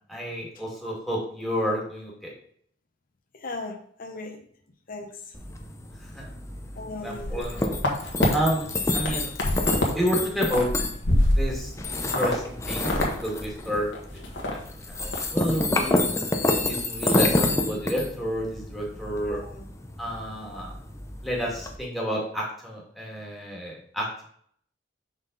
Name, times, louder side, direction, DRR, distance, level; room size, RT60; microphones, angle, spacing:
voice 1, 0.1-2.3 6.0-6.3 7.0-7.8 8.3-9.3 9.9-10.7 11.3-11.7 12.0-12.9 13.2-14.2 14.5-14.6 15.0-16.1 16.7-19.4 20.0-20.8 21.2-24.2, equal, ahead, -4 dB, 2.0 m, -30 dB
voice 2, 3.4-4.4 4.9-5.1 6.7-7.6 19.3-19.6, left 2 dB, 50° left, 3 dB, 0.9 m, -38 dB
sound 1, 5.3-21.8, left 2 dB, 15° left, 0.7 m, -29 dB
sound 2, 7.1-8.3 8.7-9.9 10.2-11.7 12.1-12.4 12.7-13.1 13.4-13.5 13.9-14.5 14.9-15.2 15.5-15.8, left 1 dB, 80° left, 1.5 m, -25 dB
5.8 x 5.4 x 3.9 m, 0.63 s
head